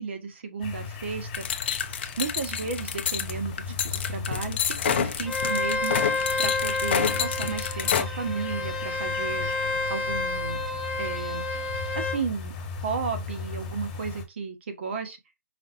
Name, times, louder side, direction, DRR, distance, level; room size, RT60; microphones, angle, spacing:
voice 1, 0.0-1.5 2.2-6.0 6.4-9.5 9.9-10.6 11.0-11.4 11.9-12.5 12.8-15.2, right 5 dB, 40° right, 1.3 m, -33 dB
sound 1, 0.6-14.2, left 4 dB, 20° left, 1.5 m, -37 dB
sound 2, 1.3-8.0, left 8 dB, 35° left, 0.7 m, -28 dB
Bowed string instrument, 5.3-12.2, left 2 dB, 5° left, 1.1 m, -30 dB
5.3 x 3.8 x 2.6 m
hypercardioid pair, 170°, 9 cm